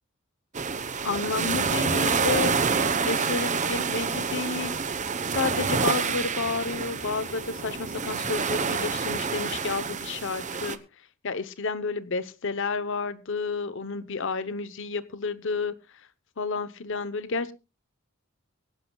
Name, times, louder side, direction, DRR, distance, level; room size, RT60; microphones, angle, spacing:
sound 1, 0.5-10.8, right 5 dB, 35° right, 1.0 m, -28 dB
voice 1, 1.0-2.5 3.0-4.8 5.2-10.8 11.2-15.7 16.4-17.5, left 4 dB, 65° left, 14 dB, 0.9 m, -30 dB
24.0 x 10.5 x 2.3 m, 0.29 s
head